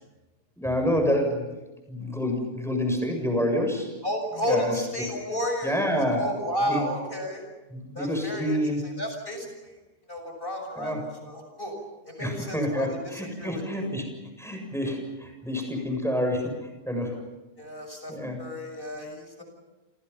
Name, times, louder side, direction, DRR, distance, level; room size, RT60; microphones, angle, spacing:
voice 1, 0.6-1.5 1.9-3.9 4.5-4.7 5.6-6.2 6.6-6.8 7.7-8.8 10.8-11.0 12.2-14.1 14.4-17.2 18.1-18.4, equal, ahead, 3 dB, 7.5 m, -28 dB
voice 2, 4.0-7.4 7.9-8.6 8.8-9.8 10.1-11.7 12.0-13.9 17.6-18.1 18.4-19.4, equal, 35° left, 4 dB, 6.6 m, -32 dB
29.5 x 28.5 x 5.8 m, 1.0 s
omnidirectional pair, 1.7 m